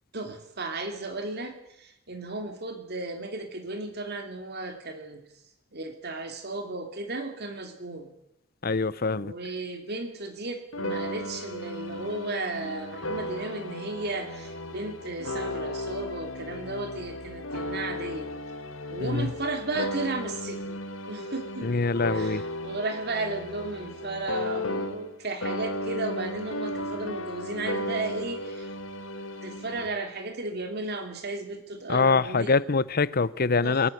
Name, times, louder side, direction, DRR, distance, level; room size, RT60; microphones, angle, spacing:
voice 1, 0.1-5.2 5.7-8.1 9.1-18.3 18.9-20.8 21.1-21.7 22.1-28.7 29.4-32.6 33.6-33.9, right 2 dB, 55° right, 2.7 m, -34 dB
voice 2, 8.6-9.3 19.0-19.3 21.6-22.4 31.9-33.9, left 4 dB, 50° left, 0.8 m, -24 dB
sound 1, 10.7-25.2 25.4-29.9, left 1 dB, 75° left, 2.0 m, -35 dB
21.5 x 19.5 x 8.0 m
head